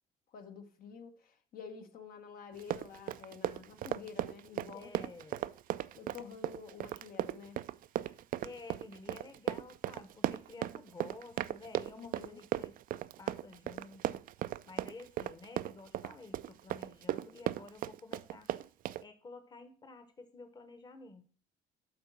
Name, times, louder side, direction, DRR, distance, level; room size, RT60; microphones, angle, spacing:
voice 1, 0.3-5.1 5.9-7.6 12.0-12.4, left 6 dB, 60° left, 1.0 m, -49 dB
Run, 2.5-19.0, right 13 dB, 55° right, 0.4 m, -36 dB
voice 2, 4.7-5.5 8.0-12.8 13.2-14.3 14.7-18.5 19.0-21.3, left 3 dB, 25° left, 1.0 m, -52 dB
7.9 x 3.9 x 6.0 m
cardioid pair, 110°, 17 cm